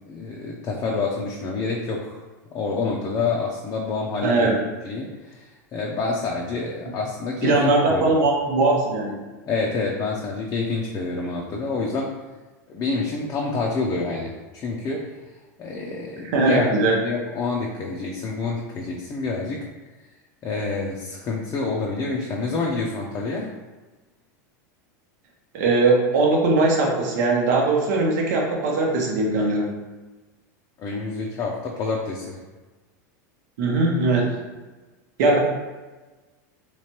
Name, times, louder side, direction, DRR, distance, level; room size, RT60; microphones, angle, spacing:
voice 1, 0.1-2.2 2.5-4.5 4.8-8.1 9.5-12.1 12.7-15.1 15.6-16.7 17.0-19.7 20.4-23.5 30.8-32.4, left 3 dB, 35° left, -2 dB, 0.5 m, -27 dB
voice 2, 4.2-4.6 7.4-9.2 16.2-17.0 25.5-29.7 33.6-34.4 35.2-35.4, right 3 dB, 70° right, -1 dB, 0.9 m, -20 dB
3.2 x 3.1 x 2.9 m, 1.2 s
supercardioid pair, 120°, 10 cm